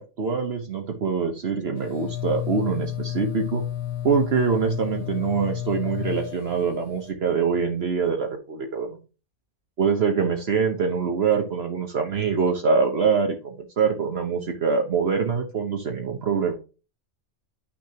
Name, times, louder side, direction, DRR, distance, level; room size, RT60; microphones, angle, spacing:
voice 1, 0.0-3.6 4.0-9.0 9.8-16.5, right 5 dB, 55° right, 3 dB, 1.2 m, -24 dB
sound 1, 1.8-7.1, left 11 dB, 75° left, 1.2 m, -32 dB
10.0 x 6.1 x 2.8 m, 0.33 s
omnidirectional pair, 1.3 m